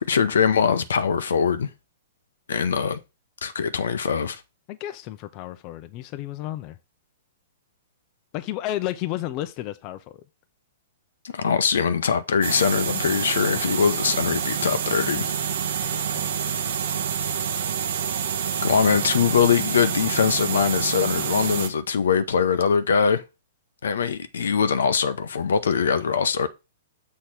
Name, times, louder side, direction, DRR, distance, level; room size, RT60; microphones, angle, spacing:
voice 1, 0.1-1.7 2.5-3.0 3.4-4.4 11.3-15.3 18.6-23.2 23.8-26.5, left 6 dB, 75° left, 0.7 m, -22 dB
voice 2, 4.7-6.8 8.3-10.2 15.8-16.3, left 14 dB, 40° left, 0.6 m, -32 dB
sound 1, 12.4-21.7, right 7 dB, 70° right, 0.9 m, -27 dB
6.6 x 3.1 x 5.9 m
hypercardioid pair, 120°, 0 cm